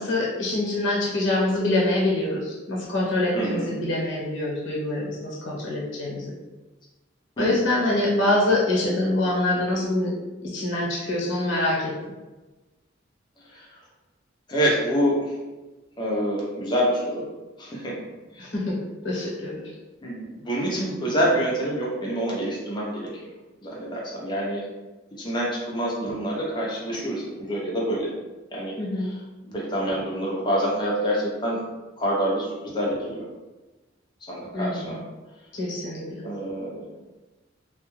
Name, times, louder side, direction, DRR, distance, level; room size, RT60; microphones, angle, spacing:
voice 1, 0.0-6.3 7.4-10.1 10.4-11.9 18.4-18.8 19.0-19.6 28.8-29.1 34.5-34.9 35.5-36.2, left 1 dB, 80° left, -4 dB, 0.9 m, -25 dB
voice 2, 3.3-3.7 7.4-7.6 13.5-13.7 14.5-15.4 16.0-17.3 17.6-18.5 20.0-23.1 23.6-24.6 25.2-28.1 28.5-31.6 32.0-33.3 34.2-35.0 36.2-36.9, equal, 25° left, -4 dB, 0.6 m, -27 dB
2.3 x 2.2 x 3.0 m, 1.2 s
head